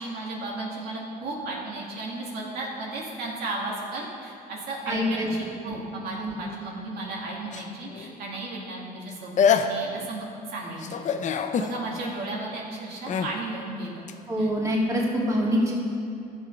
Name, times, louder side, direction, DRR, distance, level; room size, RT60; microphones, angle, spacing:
voice 1, 0.0-10.9 11.6-14.0 14.4-14.5, right 2 dB, 70° right, -4 dB, 2.2 m, -34 dB
voice 2, 4.9-5.3 5.6-5.8 6.2-6.3 14.3-15.7, equal, 20° right, -4 dB, 2.6 m, -25 dB
sound 1, 7.5-8.1 9.1-9.2 9.4-10.1 10.8-11.7 13.1-13.3 14.1-14.2, left 6 dB, 45° left, 0.6 m, -25 dB
12.5 x 7.2 x 5.8 m, 2.6 s
cardioid pair, 110°, 17 cm